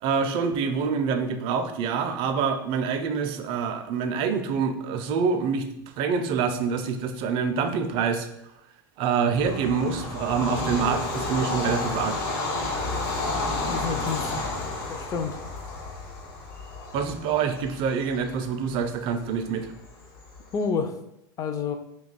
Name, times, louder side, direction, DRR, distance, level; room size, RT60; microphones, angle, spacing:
voice 1, 0.0-5.7 6.0-8.3 9.0-12.2 16.9-19.7, right 6 dB, 45° right, 7 dB, 0.4 m, -26 dB
Bird vocalization bird call bird song / Train, 9.3-20.5, left 2 dB, 65° left, 1.0 m, -31 dB
voice 2, 13.6-14.3 14.9-15.4 20.5-20.9 21.4-21.8, left 5 dB, 25° left, 7 dB, 0.4 m, -29 dB
2.9 x 2.2 x 3.9 m, 0.83 s
hypercardioid pair, 120°, 12 cm